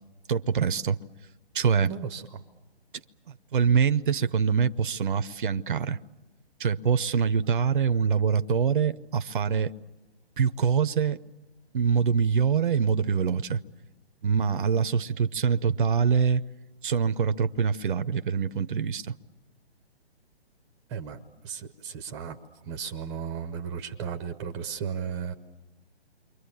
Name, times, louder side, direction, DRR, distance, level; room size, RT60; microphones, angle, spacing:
voice 1, 0.3-1.0 1.5-1.9 3.5-6.0 6.6-9.7 10.4-11.2 11.7-13.6 14.2-16.4 16.8-19.2, right 6 dB, 50° right, 0.8 m, -24 dB
voice 2, 1.8-2.4 20.9-21.2 21.4-22.4 22.6-25.3, right 7 dB, 15° right, 0.8 m, -35 dB
29.0 x 24.0 x 7.1 m
figure-of-eight pair, 140°, 32 cm